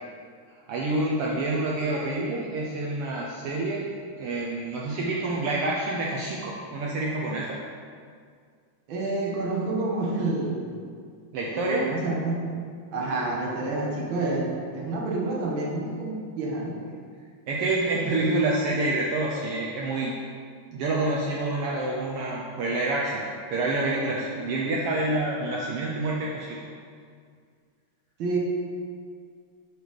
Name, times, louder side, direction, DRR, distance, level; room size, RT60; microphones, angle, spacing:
voice 1, 0.7-3.8 4.2-7.6 11.3-11.9 17.5-20.1 20.7-23.2 23.5-26.5, right 2 dB, 85° right, -3 dB, 1.2 m, -27 dB
voice 2, 8.9-10.7 11.5-12.6 12.9-16.8 28.2-28.4, right 2 dB, 60° right, -2 dB, 1.4 m, -28 dB
6.4 x 4.7 x 5.1 m, 2.1 s
omnidirectional pair, 3.4 m